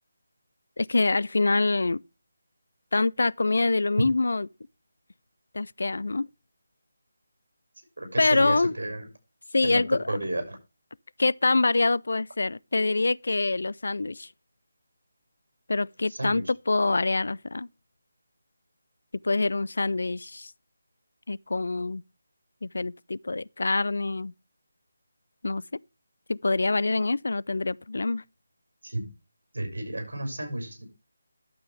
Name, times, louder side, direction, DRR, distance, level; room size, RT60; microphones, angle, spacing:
voice 1, 0.8-2.0 2.9-4.5 5.5-6.3 8.2-8.7 9.5-10.0 11.2-14.3 15.7-17.7 19.2-20.5 21.3-22.0 22.6-24.3 25.4-25.6 26.3-28.2, left 3 dB, 60° left, 0.4 m, -25 dB
voice 2, 8.0-9.0 9.6-9.8 10.1-10.6 16.1-16.4 28.8-29.0 29.5-30.9, right 1 dB, 65° right, 5.9 m, -32 dB
11.5 x 7.7 x 3.3 m
figure-of-eight pair, 155°, 0 cm